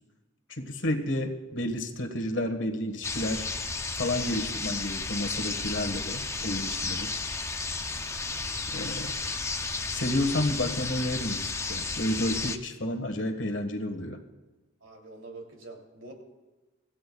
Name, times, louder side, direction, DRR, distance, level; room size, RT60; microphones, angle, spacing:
voice 1, 0.5-3.5 4.0-7.1 8.7-9.1 9.9-14.2, left 1 dB, 65° left, 6 dB, 1.5 m, -31 dB
sound 1, 3.0-12.6, left 4 dB, 15° left, 0.5 m, -33 dB
voice 2, 14.8-16.1, right 2 dB, 75° right, 1 dB, 3.0 m, -45 dB
26.0 x 15.0 x 2.4 m, 1.2 s
head